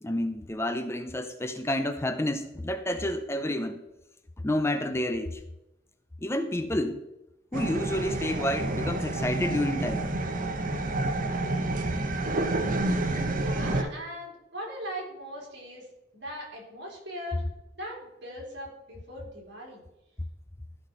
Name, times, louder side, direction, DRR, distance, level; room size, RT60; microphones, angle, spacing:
voice 1, 0.0-3.8 4.4-5.4 6.2-7.0 7.5-10.1, left 1 dB, 15° left, 0.5 m, -29 dB
sound 1, 7.5-13.8, right 2 dB, 45° right, 0.9 m, -29 dB
voice 2, 13.4-15.9 16.1-17.4 17.8-19.8, equal, 60° right, 3.6 m, -39 dB
13.0 x 6.0 x 4.3 m
head